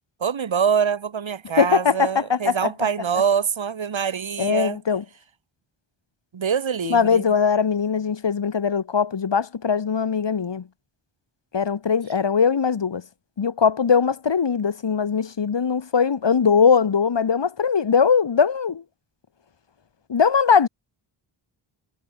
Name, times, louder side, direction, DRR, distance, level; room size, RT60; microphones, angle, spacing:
voice 1, 0.2-4.8 6.3-7.3, right 7 dB, 65° right, 4.0 m, -24 dB
voice 2, 1.6-2.7 4.4-5.0 6.8-10.6 11.5-13.0 13.4-18.8 20.1-20.7, left 6 dB, 55° left, 4.8 m, -20 dB
wide cardioid pair, 150°, 50 cm